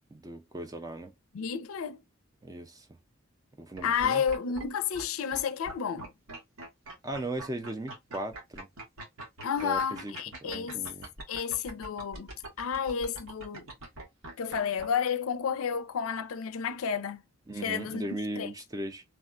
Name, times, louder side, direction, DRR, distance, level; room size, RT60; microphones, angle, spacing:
voice 1, 0.1-1.1 2.4-2.9 3.6-4.2 7.0-8.7 9.6-10.1 10.4-11.1 17.5-19.0, right 1 dB, 15° right, 0.4 m, -37 dB
voice 2, 1.3-2.0 3.8-6.1 9.4-10.9 11.3-12.3 12.6-13.7 14.4-17.2 17.6-18.0 18.3-18.5, left 7 dB, 85° left, 0.4 m, -31 dB
sound 1, 3.7-4.7 4.9-5.0 5.3-14.9, right 2 dB, 90° right, 1.3 m, -43 dB
3.4 x 2.2 x 2.4 m
head